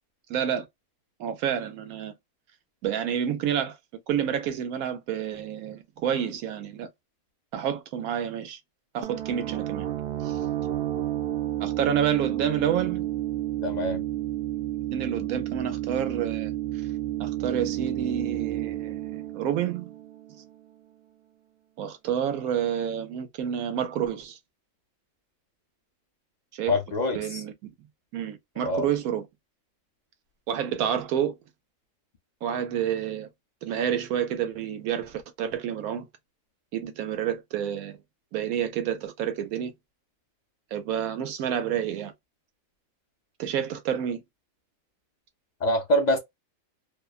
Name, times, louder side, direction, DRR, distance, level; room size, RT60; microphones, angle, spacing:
voice 1, 0.3-0.7 1.2-2.1 2.8-3.8 4.1-6.9 7.5-8.6 8.9-9.9 10.2-10.4 11.6-13.1 14.9-16.5 17.2-19.9 21.8-24.4 26.5-26.7 27.1-27.5 28.1-29.3 30.5-31.3 32.4-33.3 33.6-36.1 36.7-38.0 38.3-39.7 40.7-42.1 43.4-44.2, right 9 dB, 90° right, 1.1 m, -29 dB
sound 1, 9.0-20.5, right 13 dB, 70° right, 0.5 m, -31 dB
voice 2, 13.6-14.0 26.7-27.4 28.6-28.8 45.6-46.2, left 1 dB, 60° left, 0.4 m, -25 dB
2.6 x 2.2 x 2.3 m
omnidirectional pair, 1.4 m